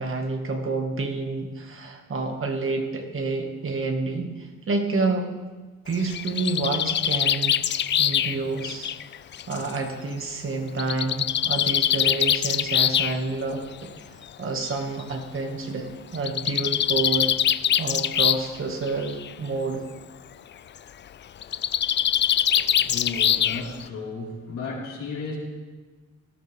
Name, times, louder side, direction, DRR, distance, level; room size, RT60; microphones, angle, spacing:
voice 1, 0.0-4.3 4.7-5.3 5.9-7.6 8.0-8.9 9.5-13.9 14.4-17.3 17.8-19.8 22.5-22.7, right 3 dB, 45° right, 3 dB, 2.0 m, -28 dB
Bird, 5.9-9.7 10.8-13.1 14.2-14.3 14.7-14.8 15.0-15.1 16.1-18.6 18.9-19.3 21.4-23.8, left 10 dB, 40° left, 0.4 m, -23 dB
voice 2, 22.7-25.4, left 3 dB, 70° left, -5 dB, 4.7 m, -34 dB
18.0 x 12.0 x 3.5 m, 1.3 s
cardioid pair, 90°, 30 cm